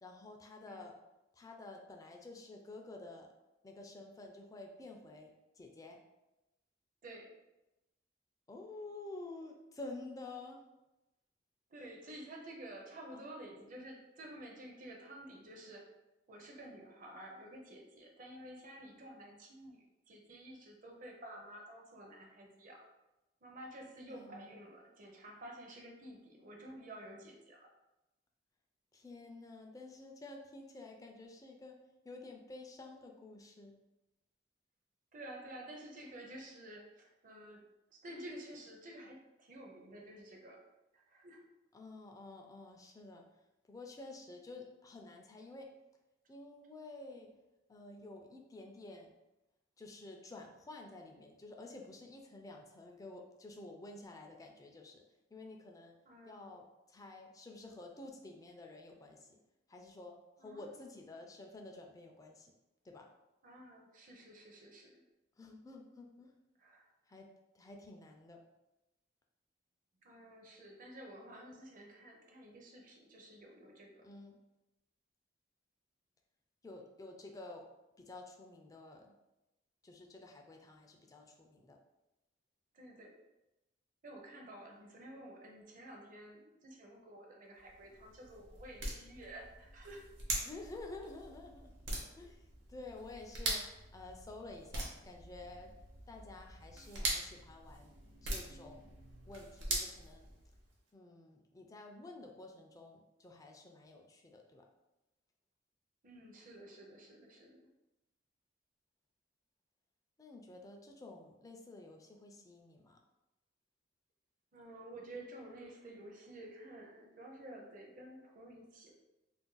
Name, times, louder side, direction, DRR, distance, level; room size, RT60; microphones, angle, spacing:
voice 1, 0.0-1.0 1.3-3.3 3.6-6.0 8.5-10.6 13.1-13.2 24.1-24.6 28.9-31.8 32.0-33.8 41.7-43.2 43.6-45.7 46.3-47.3 47.7-49.1 49.8-55.0 55.3-56.0 56.3-59.4 59.7-62.5 62.8-63.1 65.4-66.3 67.1-67.3 67.5-68.4 74.0-74.4 76.6-77.7 78.0-79.1 79.8-81.8 90.4-95.7 96.1-97.9 98.2-98.9 99.3-100.3 100.9-104.6 110.2-113.0, left 2 dB, 20° left, 2 dB, 0.3 m, -51 dB
voice 2, 7.0-7.3 11.7-15.9 16.3-22.9 23.4-27.7 35.1-37.6 37.9-40.6 40.9-41.4 56.0-56.6 60.4-61.0 63.4-65.0 66.6-66.8 70.0-74.1 82.7-83.1 84.0-90.0 106.0-107.7 114.5-118.9, right 1 dB, 45° right, 1 dB, 0.6 m, -51 dB
sound 1, 87.6-100.8, right 2 dB, 70° right, 0.8 m, -43 dB
2.5 x 2.2 x 3.8 m, 0.98 s
head